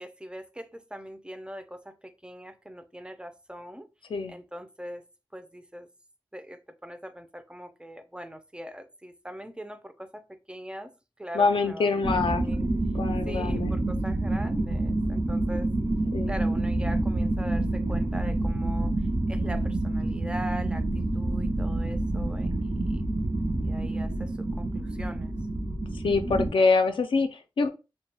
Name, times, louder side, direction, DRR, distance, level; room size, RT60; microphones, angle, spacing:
voice 1, 0.0-3.9 4.3-5.1 5.3-5.9 6.3-10.2 10.5-10.9 11.2-12.7 13.3-15.7 16.3-23.1 23.6-25.3, equal, 10° right, 0.4 m, -41 dB
voice 2, 11.3-12.4 13.0-13.7 16.1-16.3 25.9-27.7, left 4 dB, 75° left, 0.4 m, -25 dB
sound 1, 12.0-26.5, right 2 dB, 55° right, 0.6 m, -28 dB
2.2 x 2.1 x 3.2 m
wide cardioid pair, 70°, 9 cm